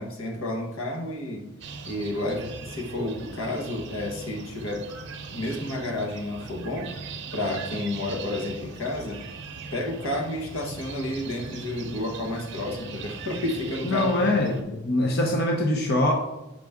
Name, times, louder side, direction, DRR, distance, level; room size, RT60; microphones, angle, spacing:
voice 1, 0.0-1.5 1.9-4.9 5.3-7.0 7.3-9.2 9.7-14.4, left 1 dB, 80° left, 1 dB, 1.2 m, -31 dB
sound 1, 1.6-14.6, right 4 dB, 55° right, 0.7 m, -40 dB
voice 2, 13.8-16.1, left 1 dB, 50° left, 1 dB, 0.8 m, -23 dB
6.7 x 4.9 x 3.5 m, 0.99 s
head